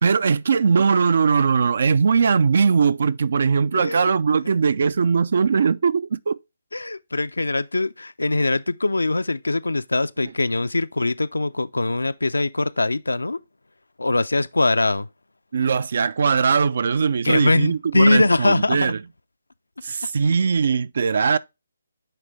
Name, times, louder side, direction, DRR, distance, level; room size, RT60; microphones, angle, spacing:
voice 1, 0.0-6.4 15.5-19.0 19.8-21.4, right 5 dB, 55° right, 0.3 m, -20 dB
voice 2, 3.7-4.1 6.7-13.4 14.0-15.1 17.2-18.9, left 2 dB, 80° left, 0.4 m, -22 dB
9.0 x 3.3 x 3.2 m
figure-of-eight pair, 145°, 0 cm